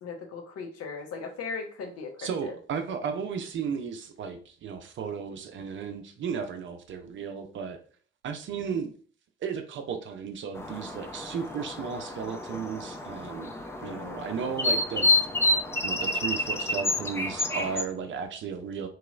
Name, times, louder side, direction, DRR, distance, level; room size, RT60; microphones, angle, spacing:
voice 1, 0.0-2.5 13.8-14.3, left 4 dB, 55° left, 0.9 m, -38 dB
voice 2, 2.2-7.8 8.2-8.9 9.4-13.5 13.8-15.1 15.8-18.9, right 6 dB, 40° right, 0.5 m, -34 dB
sound 1, 10.5-17.8, left 2 dB, 10° left, 0.4 m, -29 dB
3.0 x 2.9 x 2.4 m
figure-of-eight pair, 45°, 30 cm